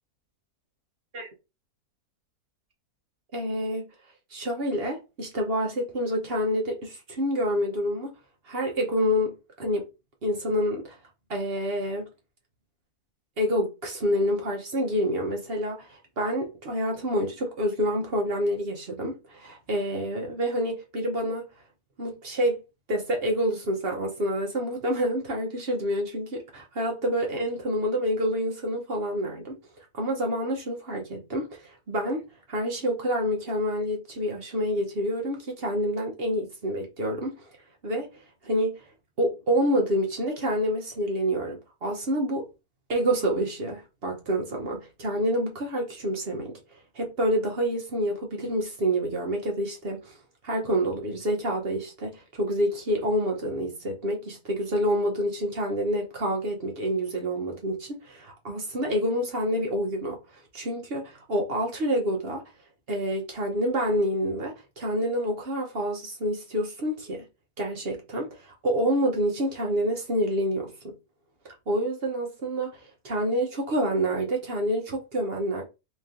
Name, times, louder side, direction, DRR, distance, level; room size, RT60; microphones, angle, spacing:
voice 1, 3.3-3.9 4.3-8.1 8.5-9.9 10.2-11.0 11.3-12.1 13.4-21.4 22.0-22.6 22.9-32.2 32.5-37.3 37.8-38.1 38.4-38.8 39.2-42.5 42.9-46.6 46.9-50.2 50.4-60.2 60.5-62.4 62.9-67.2 67.6-70.9 71.7-75.6, equal, 45° right, 1.0 m, -28 dB
3.2 x 3.0 x 3.7 m
omnidirectional pair, 1.7 m